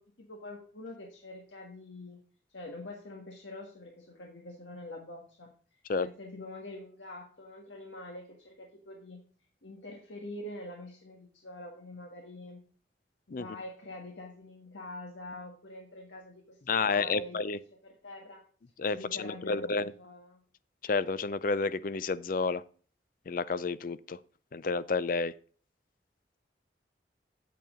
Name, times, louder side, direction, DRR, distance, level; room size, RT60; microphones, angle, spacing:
voice 1, 0.0-2.2 2.5-9.2 9.6-12.6 13.3-16.6 16.8-17.4 17.8-18.4 18.9-20.4, left 1 dB, 90° left, 1 dB, 1.6 m, -45 dB
voice 2, 16.7-17.6 18.8-19.9 20.8-22.6 23.3-24.2 24.5-25.3, left 4 dB, 50° left, 16 dB, 0.5 m, -30 dB
8.7 x 8.3 x 3.7 m, 0.41 s
head